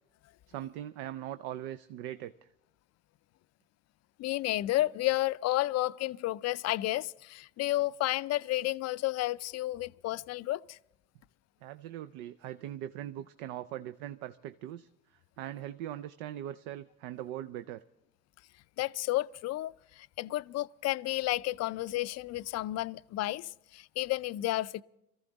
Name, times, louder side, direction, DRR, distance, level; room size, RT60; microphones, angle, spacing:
voice 1, 0.5-2.3 11.6-14.9 15.4-17.8, right 12 dB, 75° right, 0.5 m, -40 dB
voice 2, 4.2-10.8 18.8-24.8, left 16 dB, 50° left, 0.5 m, -32 dB
22.5 x 14.0 x 3.9 m
hypercardioid pair, 55°, 35 cm